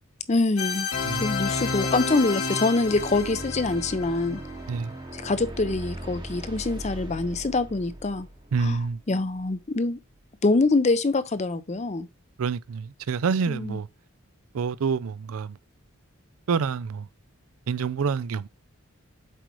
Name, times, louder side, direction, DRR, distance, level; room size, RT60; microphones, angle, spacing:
voice 1, 0.3-0.9 1.2-4.4 5.1-8.3 8.6-8.8 9.1-10.0 10.4-12.1 13.5-13.8, left 3 dB, 30° left, 0.5 m, -25 dB
sound 1, 0.6-5.2, left 4 dB, 85° left, 1.7 m, -31 dB
sound 2, 2.9-9.5, right 1 dB, 20° right, 0.9 m, -39 dB
voice 2, 8.5-9.0 12.4-13.9 14.5-15.6 16.5-17.1 17.7-18.5, right 5 dB, 80° right, 0.4 m, -27 dB
7.7 x 4.8 x 3.0 m
head